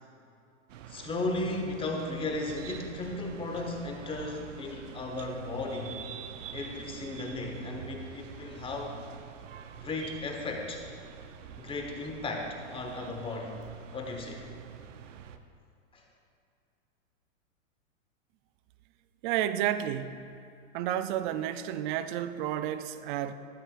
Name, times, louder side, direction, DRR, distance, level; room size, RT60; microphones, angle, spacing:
sound 1, 0.7-15.4, right 7 dB, 70° right, 0.8 m, -46 dB
voice 1, 0.9-6.0 6.5-9.0 9.7-10.8 11.6-13.6 13.9-14.5 15.9-16.0, left 2 dB, 15° left, 2 dB, 1.2 m, -35 dB
voice 2, 19.2-20.3 20.7-23.3, right 11 dB, 40° right, 12 dB, 0.4 m, -31 dB
13.0 x 11.0 x 2.5 m, 2.6 s
hypercardioid pair, 120°, 40 cm